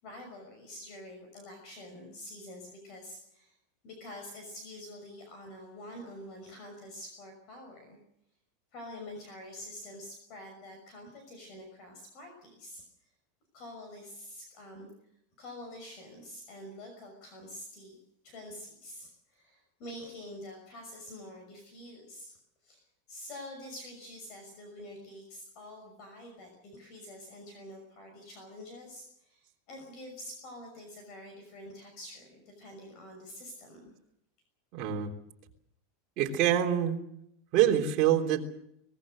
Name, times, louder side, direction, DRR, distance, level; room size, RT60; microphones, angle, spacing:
voice 1, 0.0-3.6 3.8-8.0 8.7-12.8 13.5-14.9 15.4-18.0 18.2-22.3 22.6-33.9, left 1 dB, 40° left, 4 dB, 6.0 m, -47 dB
voice 2, 34.7-35.1 36.2-37.0 37.5-38.5, right 10 dB, 40° right, 1 dB, 3.5 m, -25 dB
24.0 x 20.0 x 6.6 m, 0.75 s
supercardioid pair, 170°, 0 cm